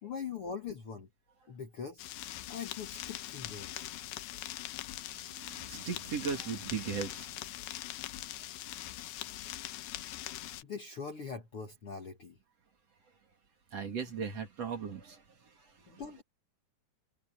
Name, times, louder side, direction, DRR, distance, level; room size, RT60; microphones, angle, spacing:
voice 1, 0.0-1.1 1.5-2.0 2.5-3.9 10.6-12.4 15.9-16.2, left 6 dB, 50° left, 1.9 m, -42 dB
sound 1, 2.0-10.6, left 14 dB, 90° left, 2.9 m, -42 dB
voice 2, 5.1-7.5 13.7-16.0, right 6 dB, 45° right, 3.2 m, -38 dB
omnidirectional pair, 4.3 m